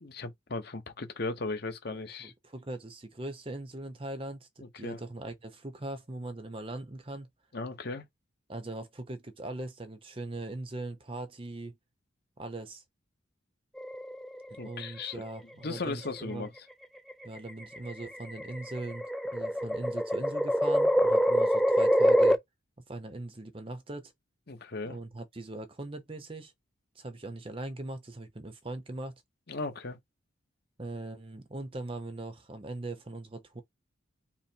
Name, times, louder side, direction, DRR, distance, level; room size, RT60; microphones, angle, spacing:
voice 1, 0.0-2.3 4.6-5.0 7.5-8.0 14.6-15.2 15.6-16.5 24.5-25.0 29.5-30.0, left 3 dB, 50° left, 0.9 m, -37 dB
voice 2, 2.2-7.3 8.5-11.8 12.4-12.8 14.5-16.5 17.2-22.4 22.9-24.1 24.8-26.5 27.0-29.1 30.8-33.6, right 2 dB, 25° right, 0.7 m, -40 dB
sound 1, 13.8-14.6 15.8-16.2 17.1-22.4, equal, ahead, 0.3 m, -26 dB
5.5 x 2.1 x 4.5 m
head